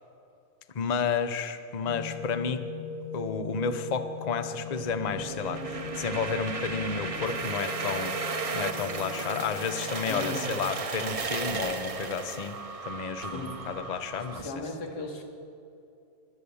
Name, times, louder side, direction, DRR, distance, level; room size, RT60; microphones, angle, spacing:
voice 1, 0.7-2.6 3.1-12.6 12.9-14.7, left 6 dB, 35° left, 9 dB, 0.7 m, -32 dB
sound 1, 1.8-10.4, left 3 dB, 55° left, 2.3 m, -39 dB
sound 2, 4.7-14.5, right 4 dB, 45° right, 0.4 m, -35 dB
voice 2, 10.1-10.4 13.3-13.5 14.4-15.2, left 2 dB, 80° left, 1 dB, 2.8 m, -36 dB
24.0 x 8.3 x 7.0 m, 2.7 s
omnidirectional pair, 1.7 m